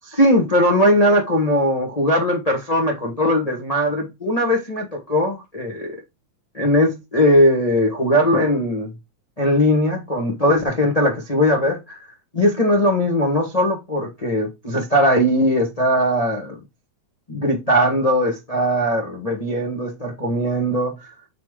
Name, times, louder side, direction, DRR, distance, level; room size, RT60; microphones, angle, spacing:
voice 1, 0.0-6.0 6.5-8.9 9.4-12.0 12.3-16.6 17.3-21.1, equal, 65° left, 0.3 m, -19 dB
8.7 x 3.2 x 3.6 m
omnidirectional pair, 3.4 m